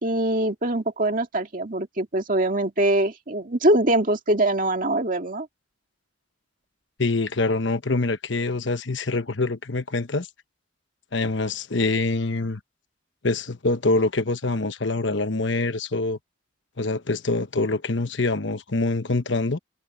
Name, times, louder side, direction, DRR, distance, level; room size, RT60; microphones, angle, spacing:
voice 1, 0.0-5.5, right 1 dB, 40° right, 2.1 m, -23 dB
voice 2, 7.0-10.3 11.1-12.6 13.2-16.2 16.8-19.6, left 3 dB, 65° left, 1.1 m, -25 dB
head